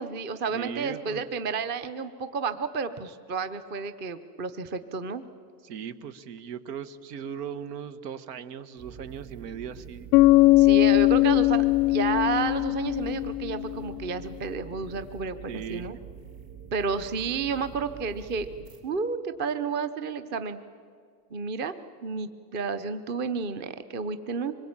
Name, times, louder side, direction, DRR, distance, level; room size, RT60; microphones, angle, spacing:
voice 1, 0.0-5.2 10.6-16.0 16.7-18.5 18.8-20.6 21.3-21.7 22.0-24.6, right 5 dB, 20° right, 11 dB, 0.7 m, -31 dB
voice 2, 0.5-1.2 5.6-10.1 15.5-16.0, right 8 dB, 80° right, 12 dB, 1.6 m, -38 dB
sound 1, 8.8-18.8, right 8 dB, 60° right, 4.5 m, -45 dB
Bass guitar, 10.1-14.0, left 19 dB, 80° left, 0.6 m, -20 dB
25.0 x 22.0 x 8.8 m, 2.1 s
supercardioid pair, 165°, 48 cm